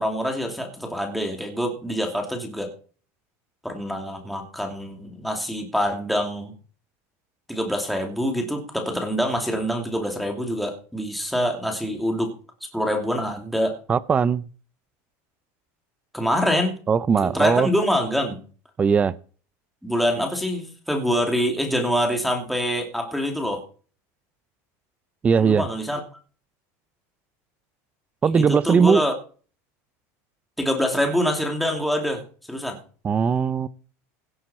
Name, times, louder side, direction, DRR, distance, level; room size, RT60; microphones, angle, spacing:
voice 1, 0.0-2.7 3.6-6.5 7.5-12.3 12.6-13.8 16.1-16.8 17.2-18.4 19.8-23.6 25.4-26.0 28.2-29.1 30.6-32.2 32.5-32.8, equal, ahead, 2.7 m, -25 dB
voice 2, 13.9-14.5 16.9-17.7 18.8-19.1 25.2-25.6 28.2-29.0 33.0-33.7, right 6 dB, 15° right, 0.5 m, -19 dB
16.5 x 9.5 x 4.3 m
cardioid pair, 160°, 8 cm